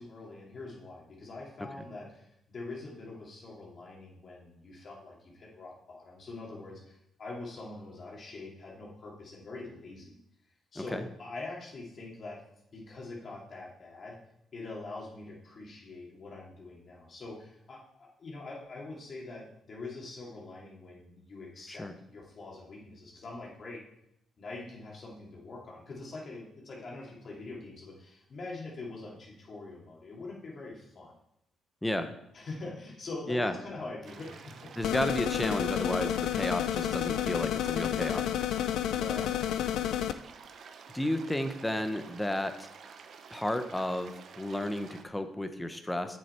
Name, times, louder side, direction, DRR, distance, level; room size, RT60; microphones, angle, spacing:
voice 1, 0.0-10.2 10.7-12.4 12.7-14.2 14.5-23.8 24.4-31.2 32.3-34.7 38.8-40.0, left 3 dB, 50° left, -3 dB, 2.7 m, -44 dB
voice 2, 31.8-32.1 33.3-33.5 34.8-38.3 40.9-42.7 43.3-46.2, left 1 dB, 10° left, 9 dB, 0.8 m, -32 dB
sound 1, 34.0-45.0, right 6 dB, 60° right, 0.8 m, -50 dB
sound 2, 34.8-40.1, left 11 dB, 85° left, 0.4 m, -30 dB
7.6 x 6.6 x 4.4 m, 0.79 s
cardioid pair, 90°, 0 cm